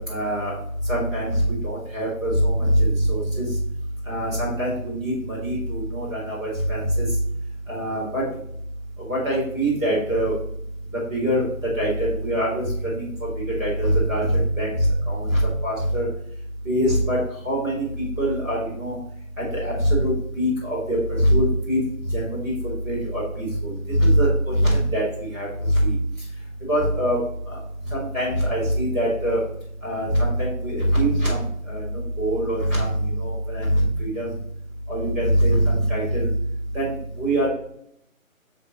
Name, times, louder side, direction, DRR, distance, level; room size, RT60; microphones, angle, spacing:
voice 1, 0.1-0.5 0.9-3.5 4.0-7.1 7.7-8.2 9.1-10.3 11.1-11.4 11.8-13.1 13.6-16.1 16.6-17.2 17.4-18.9 19.4-21.8 22.1-25.9 26.7-27.2 27.5-27.6 27.9-29.4 29.8-31.8 32.2-34.3 34.9-36.3 36.7-37.5, right 1 dB, ahead, -21 dB, 2.6 m, -23 dB
6.6 x 3.6 x 4.1 m, 0.71 s
figure-of-eight pair, 175°, 41 cm